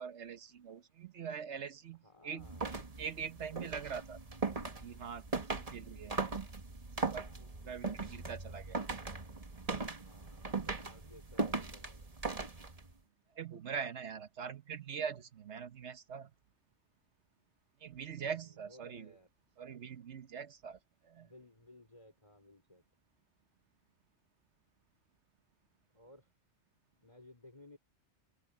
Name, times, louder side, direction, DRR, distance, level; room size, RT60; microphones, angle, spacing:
voice 1, 0.0-2.5 3.0-4.2 4.8-6.2 7.1-8.8 13.3-16.3 17.8-19.1 19.6-21.3, right 7 dB, 70° right, 1.2 m, -43 dB
voice 2, 2.0-2.8 3.5-3.9 5.9-6.0 7.1-7.8 10.0-12.1 18.1-19.3 21.2-22.8 25.9-26.3 27.0-27.8, left 1 dB, 25° left, 4.1 m, -59 dB
sound 1, 2.4-12.9, right 3 dB, 30° right, 1.5 m, -39 dB
omnidirectional pair, 1.2 m